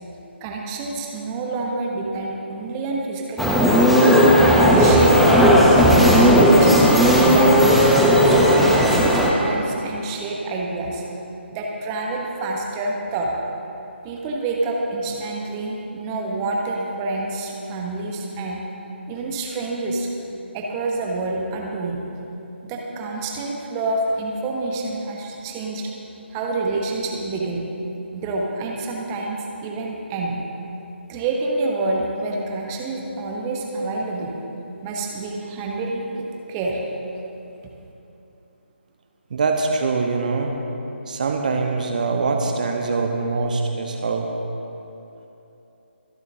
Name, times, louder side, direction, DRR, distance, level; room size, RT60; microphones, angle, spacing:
voice 1, 0.4-4.0 4.5-5.7 6.0-6.8 7.2-11.0 11.5-13.3 14.0-18.6 19.1-20.1 20.5-22.0 22.6-25.9 26.3-27.6 28.1-30.4 31.1-34.3 34.8-36.8, right 2 dB, 15° right, -1 dB, 1.1 m, -27 dB
sound 1, 3.4-9.3, equal, ahead, 0.7 m, -14 dB
voice 2, 39.3-40.6 41.1-44.3, right 4 dB, 40° right, 2 dB, 1.1 m, -23 dB
24.0 x 11.0 x 2.8 m, 2.9 s
figure-of-eight pair, 150°, 7 cm